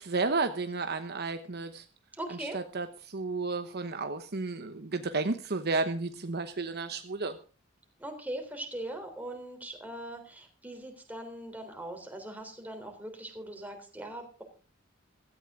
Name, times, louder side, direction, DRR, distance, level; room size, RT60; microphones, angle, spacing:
voice 1, 0.0-1.8 2.5-7.4, right 3 dB, 50° right, 8 dB, 1.0 m, -32 dB
voice 2, 2.1-2.6 8.0-14.4, right 1 dB, 10° right, 4 dB, 3.6 m, -40 dB
16.5 x 14.0 x 3.7 m, 0.36 s
head